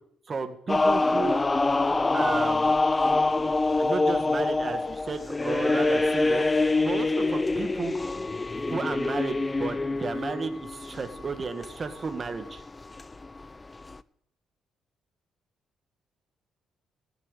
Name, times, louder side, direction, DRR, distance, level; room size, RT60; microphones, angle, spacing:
voice 1, 0.3-1.4 2.1-2.7 3.8-7.9 8.7-12.6, right 4 dB, 35° right, 8 dB, 1.9 m, -33 dB
sound 1, 0.7-14.0, left 3 dB, 20° left, 0.7 m, -25 dB
16.0 x 9.0 x 8.2 m, 0.67 s
cardioid pair, 90°, 0 cm